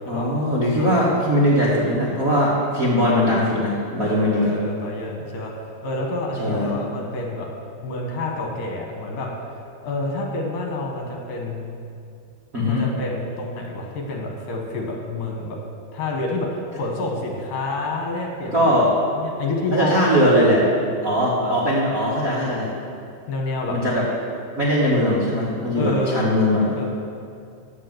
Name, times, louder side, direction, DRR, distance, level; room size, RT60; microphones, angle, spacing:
voice 1, 0.0-4.5 6.4-6.7 12.5-12.8 18.5-18.9 19.7-20.6 21.0-22.6 23.7-24.0 24.5-26.8, equal, 45° right, -8 dB, 1.1 m, -20 dB
voice 2, 4.0-7.5 7.8-11.7 12.7-15.6 15.9-18.7 19.1-20.1 20.5-20.6 23.3-23.8 25.8-26.2 26.8-26.9, left 2 dB, 70° left, 0 dB, 2.8 m, -28 dB
9.3 x 7.6 x 7.8 m, 2.4 s
omnidirectional pair, 4.3 m